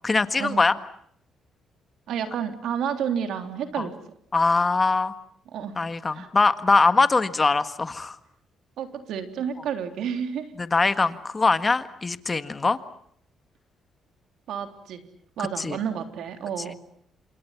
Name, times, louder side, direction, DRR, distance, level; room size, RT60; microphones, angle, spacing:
voice 1, 0.0-0.7 3.8-3.9 4.3-5.1 5.8-8.2 10.6-12.8 15.6-15.8, left 3 dB, 25° left, 11 dB, 1.7 m, -22 dB
voice 2, 2.1-3.9 5.5-5.8 6.1-6.3 8.8-10.5 14.5-15.0 15.4-16.8, right 8 dB, 80° right, 7 dB, 3.5 m, -30 dB
30.0 x 27.5 x 5.9 m, 0.66 s
cardioid pair, 90°, 0 cm